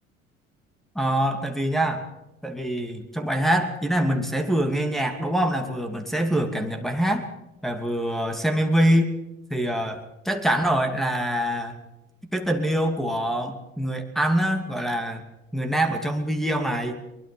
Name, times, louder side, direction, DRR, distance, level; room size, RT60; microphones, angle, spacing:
voice 1, 0.9-2.0 2.4-7.3 7.6-9.2 9.5-11.8 12.3-15.2 15.5-17.0, right 1 dB, ahead, 3 dB, 2.8 m, -24 dB
23.0 x 22.0 x 5.5 m, 0.95 s
figure-of-eight pair, 60°, 39 cm